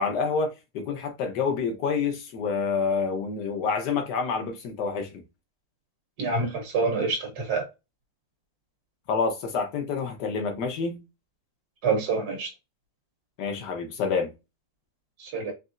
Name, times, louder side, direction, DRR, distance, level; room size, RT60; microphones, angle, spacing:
voice 1, 0.0-5.1 9.1-11.0 13.4-14.3, left 5 dB, 65° left, 1.6 m, -28 dB
voice 2, 6.2-7.7 11.8-12.5 15.2-15.5, right 4 dB, 60° right, 1.6 m, -27 dB
4.3 x 3.2 x 2.5 m
omnidirectional pair, 2.0 m